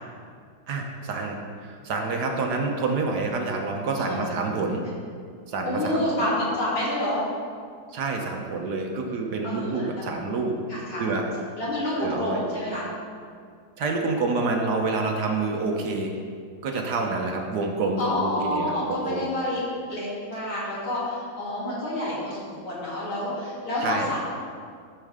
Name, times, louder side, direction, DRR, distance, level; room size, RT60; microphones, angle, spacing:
voice 1, 0.7-4.8 5.5-6.0 7.9-10.6 11.0-11.3 12.0-12.4 13.8-16.1 16.6-19.2 23.8-24.1, right 3 dB, 60° right, 2 dB, 1.3 m, -27 dB
voice 2, 5.7-7.2 9.4-10.1 10.7-11.0 11.6-12.9 18.0-19.6 19.9-24.2, left 1 dB, 85° left, -8 dB, 3.7 m, -28 dB
13.5 x 6.6 x 3.6 m, 2.1 s
omnidirectional pair, 2.2 m